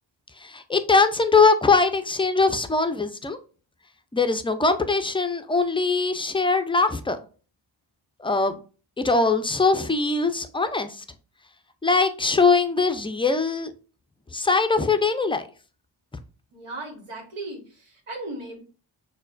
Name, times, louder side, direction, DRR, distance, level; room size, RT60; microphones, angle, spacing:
voice 1, 0.4-3.4 4.1-7.2 8.2-8.5 9.0-11.0 11.8-13.7 14.3-15.5, left 4 dB, 10° left, 0.4 m, -21 dB
voice 2, 16.5-18.6, right 2 dB, 80° right, 1.4 m, -37 dB
6.3 x 2.2 x 2.5 m
cardioid pair, 55°, 49 cm